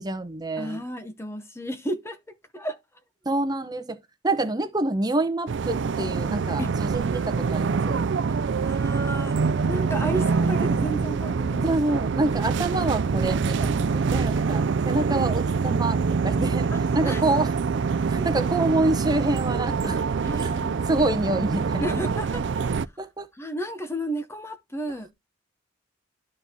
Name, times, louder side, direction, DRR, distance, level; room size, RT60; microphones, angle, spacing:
voice 1, 0.0-0.8 3.2-4.0 4.2-8.1 11.6-17.5 18.1-20.0 20.4-20.5 20.9-22.1 23.0-23.3, right 2 dB, 20° right, 0.9 m, -27 dB
voice 2, 0.6-2.2 2.5-2.8 6.6-6.7 8.6-11.7 17.0-17.4 18.2-18.4 19.8-20.8 21.8-22.9 23.3-25.1, right 1 dB, 15° left, 0.8 m, -33 dB
sound 1, 5.5-22.9, right 5 dB, 65° right, 0.4 m, -25 dB
12.5 x 4.3 x 2.8 m
head